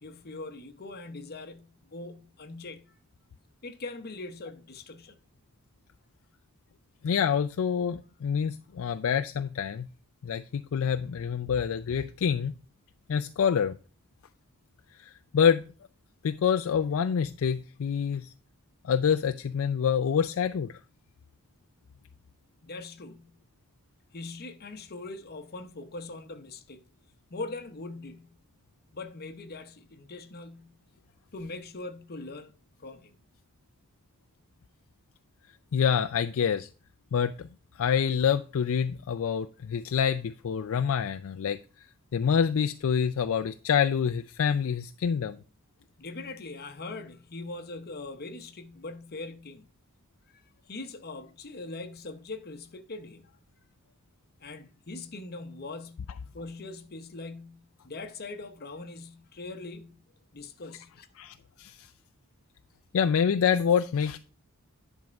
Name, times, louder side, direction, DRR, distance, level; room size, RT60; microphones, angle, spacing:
voice 1, 0.0-2.9 3.6-5.2 22.6-23.3 24.1-26.8 27.3-28.3 28.9-30.8 31.3-32.5 32.8-33.1 46.0-49.7 50.7-53.3 54.4-60.0 60.3-61.1, left 3 dB, 45° left, 0.9 m, -41 dB
voice 2, 7.0-9.9 10.2-12.5 13.1-13.8 15.0-15.6 16.2-18.3 18.8-20.7 35.7-36.7 37.1-37.3 37.8-41.6 42.1-45.4 61.2-61.9 62.9-64.2, left 7 dB, 65° left, 0.4 m, -26 dB
10.5 x 3.6 x 5.2 m
head